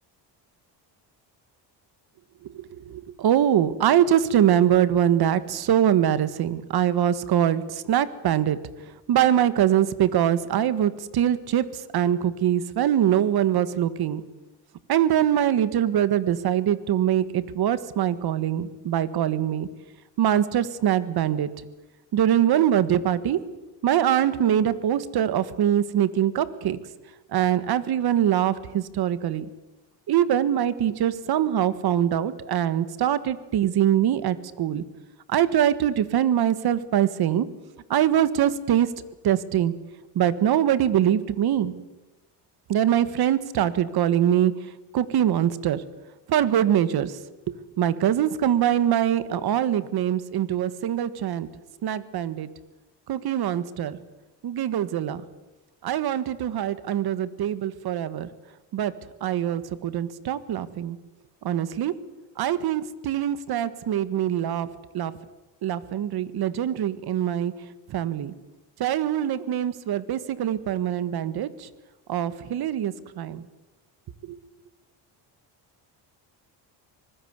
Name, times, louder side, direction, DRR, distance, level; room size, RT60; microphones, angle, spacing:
voice 1, 2.5-8.6 9.1-14.2 14.9-19.7 20.2-21.5 22.1-23.4 23.8-26.8 27.3-29.5 30.1-34.8 35.3-37.5 37.9-38.9 39.2-39.7 40.2-41.7 42.7-44.5 44.9-45.8 46.3-47.2 47.5-51.5 51.8-52.5 53.1-54.0 54.4-55.3 55.8-58.3 58.7-58.9 59.2-61.0 61.4-61.9 62.4-64.7 64.9-65.1 65.6-67.5 67.9-68.3 68.8-71.7 72.1-73.4 74.2-74.4, right 10 dB, 60° right, 14 dB, 1.7 m, -23 dB
25.5 x 20.0 x 8.2 m, 1.1 s
cardioid pair, 120°, 42 cm